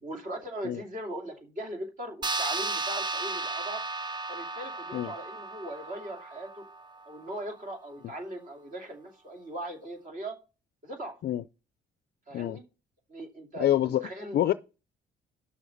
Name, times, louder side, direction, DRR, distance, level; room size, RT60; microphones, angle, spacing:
voice 1, 0.0-3.8 4.3-6.6 7.1-10.4 10.8-11.2 12.3-12.6 13.1-14.4, right 1 dB, 45° right, 2.5 m, -39 dB
sound 1, 2.2-7.1, right 3 dB, 20° right, 0.4 m, -34 dB
voice 2, 13.6-14.5, left 12 dB, 55° left, 0.4 m, -27 dB
7.1 x 6.3 x 5.2 m
cardioid pair, 90°, 20 cm